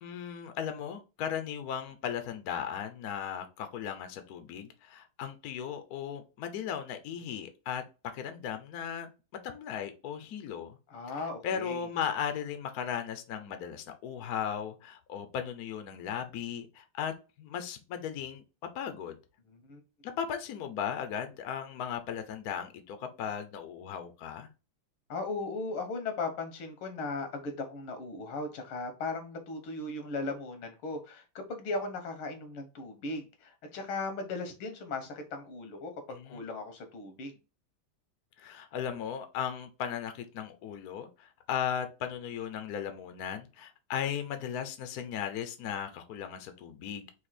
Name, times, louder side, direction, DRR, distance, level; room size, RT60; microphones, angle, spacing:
voice 1, 0.0-7.8 8.1-9.1 9.4-10.8 11.1-18.4 18.7-19.2 20.0-24.5 36.1-36.4 38.4-47.1, left 8 dB, 65° left, 1.0 m, -37 dB
voice 2, 10.9-11.9 19.5-19.8 25.1-37.4, left 3 dB, 80° left, 2.0 m, -37 dB
4.3 x 2.8 x 4.1 m
omnidirectional pair, 2.4 m